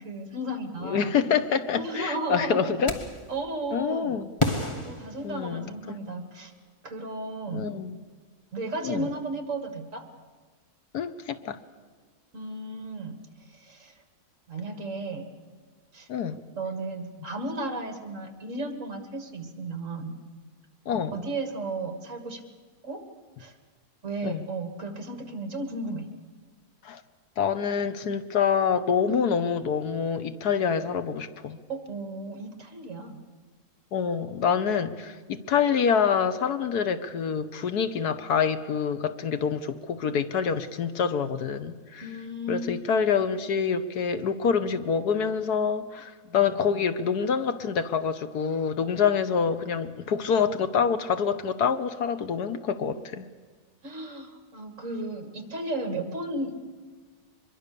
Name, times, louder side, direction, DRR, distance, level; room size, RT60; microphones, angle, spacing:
voice 1, 0.0-1.1 1.7-2.7 3.3-4.1 4.8-6.5 6.8-7.7 8.5-10.0 12.3-13.1 13.5-14.0 14.5-15.3 15.9-16.1 16.5-20.2 21.1-22.4 22.8-23.0 23.4-23.6 24.0-26.1 31.7-33.2 42.0-42.7 53.8-56.7, right 2 dB, 50° right, 7 dB, 2.4 m, -34 dB
voice 2, 0.8-3.0 3.7-4.3 5.2-6.0 7.5-8.0 8.8-9.1 10.9-11.6 16.1-16.4 20.9-21.1 24.2-24.4 26.8-27.0 27.4-31.6 33.9-42.1 42.5-53.3, left 6 dB, 75° left, 11 dB, 1.5 m, -26 dB
sound 1, 2.9-3.3 4.4-5.9, left 2 dB, 20° left, 1.7 m, -30 dB
24.0 x 22.0 x 6.8 m, 1.4 s
omnidirectional pair, 1.7 m